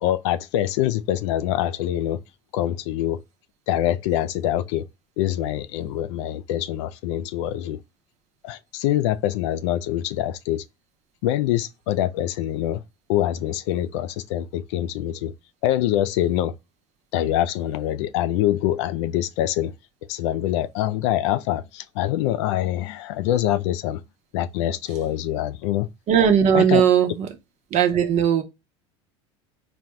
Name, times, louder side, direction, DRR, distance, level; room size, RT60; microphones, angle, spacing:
voice 1, 0.0-2.2 2.5-3.2 3.7-4.9 5.2-7.8 8.4-10.6 11.2-12.8 13.1-15.3 15.6-16.5 17.1-19.7 20.1-24.0 24.3-25.9 26.5-26.8, left 12 dB, 80° left, 0.4 m, -24 dB
voice 2, 26.1-27.3 27.7-28.4, right 8 dB, 50° right, 0.9 m, -18 dB
4.2 x 2.3 x 3.0 m
supercardioid pair, 90°, 15 cm